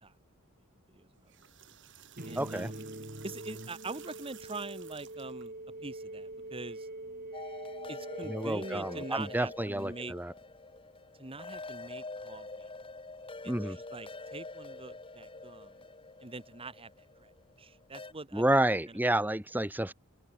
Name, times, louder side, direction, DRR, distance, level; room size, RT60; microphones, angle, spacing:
voice 1, 0.9-1.3 2.2-2.9 3.2-5.5 5.8-6.9 7.9-10.1 11.2-12.7 13.4-15.8 16.2-17.3 17.6-18.4 18.9-19.2, right 3 dB, 25° right, 1.6 m, -44 dB
sound 1, 1.1-5.5, right 10 dB, 60° right, 3.9 m, -54 dB
sound 2, 2.2-10.1, right 2 dB, 45° right, 5.6 m, -44 dB
voice 2, 2.4-2.7 8.3-10.3 13.5-13.8 18.3-19.9, right 1 dB, 10° right, 1.5 m, -30 dB
sound 3, 7.3-18.1, left 3 dB, 25° left, 2.9 m, -46 dB
head